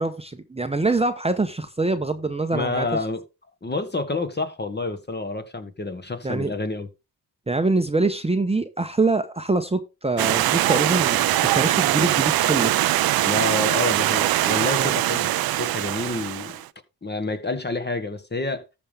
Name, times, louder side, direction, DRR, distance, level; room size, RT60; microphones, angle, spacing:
voice 1, 0.0-2.9 6.2-6.5 7.5-12.7 14.8-14.9, right 3 dB, 15° right, 0.8 m, -24 dB
voice 2, 2.5-3.2 3.6-6.9 13.2-16.6 17.0-18.6, left 2 dB, 25° left, 1.5 m, -28 dB
Stream, 10.2-16.6, right 14 dB, 70° right, 0.5 m, -22 dB
13.5 x 5.4 x 3.4 m
supercardioid pair, 50°, 38 cm